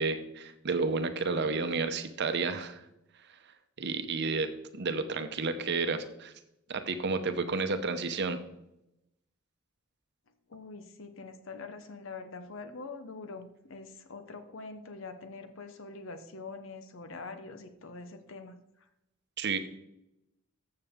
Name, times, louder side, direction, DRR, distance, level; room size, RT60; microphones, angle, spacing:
voice 1, 0.0-2.8 3.3-6.3 6.7-8.4 19.4-19.6, right 4 dB, 55° right, 9 dB, 0.8 m, -31 dB
voice 2, 10.5-18.9, left 3 dB, 65° left, 8 dB, 0.8 m, -44 dB
14.0 x 6.7 x 3.6 m, 0.85 s
head